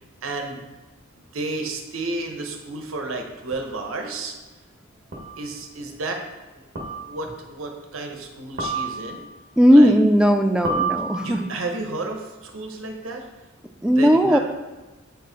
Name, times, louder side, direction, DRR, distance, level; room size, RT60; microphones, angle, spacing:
voice 1, 0.2-0.6 1.3-4.3 5.4-6.2 6.5-9.3 9.7-9.9 11.2-13.3 13.9-14.4, right 2 dB, 75° right, 3 dB, 1.0 m, -32 dB
sound 1, 3.5-3.6 5.1-5.5 6.7-7.3 8.6-9.3 10.6-11.6, right 4 dB, 45° right, 1.4 m, -29 dB
voice 2, 9.6-11.5 13.8-14.4, equal, 5° right, 6 dB, 0.4 m, -16 dB
8.2 x 4.7 x 4.0 m, 1.2 s
head